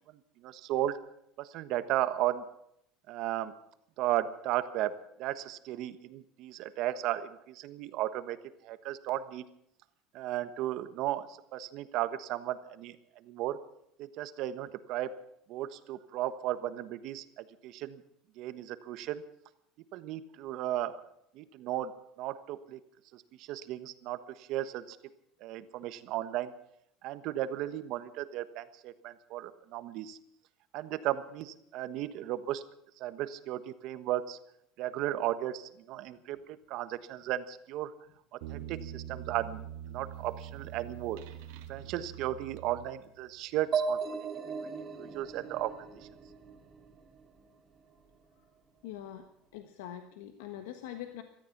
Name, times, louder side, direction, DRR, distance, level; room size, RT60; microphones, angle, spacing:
voice 1, 0.4-1.0 1.4-2.4 3.1-3.5 4.0-4.9 5.2-8.4 8.6-9.4 10.1-11.3 11.5-13.0 13.2-13.6 14.0-15.1 15.5-18.0 18.4-19.2 19.9-20.9 21.3-21.9 22.2-22.8 23.1-25.0 25.4-26.5 27.0-30.2 30.7-32.6 33.0-34.4 34.8-37.9 38.5-39.6 39.9-41.2 41.7-44.0 45.0-45.9, right 13 dB, 60° right, 12 dB, 1.3 m, -35 dB
sound 1, 38.4-43.3, right 10 dB, 85° right, 1.8 m, -44 dB
sound 2, 43.7-47.4, right 5 dB, 30° right, 2.5 m, -36 dB
voice 2, 48.8-49.3 49.5-51.2, left 11 dB, 90° left, 7 dB, 1.3 m, -43 dB
17.5 x 13.5 x 6.0 m, 0.75 s
supercardioid pair, 125°, 0 cm